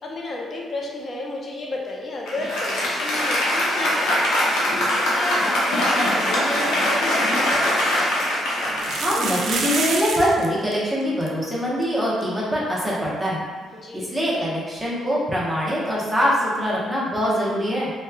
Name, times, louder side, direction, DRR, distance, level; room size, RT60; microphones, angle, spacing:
voice 1, 0.0-7.8 13.7-14.5, left 2 dB, 45° left, -1 dB, 0.5 m, -33 dB
Applause, 2.3-9.9, left 1 dB, 90° left, 0.6 m, -22 dB
sound 1, 7.5-7.6 8.7-10.5 10.7-10.8 11.0-11.3 11.8-11.9 12.2-12.3 14.3-14.4, right 4 dB, 70° right, 0.3 m, -27 dB
voice 2, 9.0-13.4 13.9-17.9, equal, 5° right, -7 dB, 0.8 m, -23 dB
3.0 x 2.2 x 2.3 m, 1.4 s
cardioid pair, 90°, 0 cm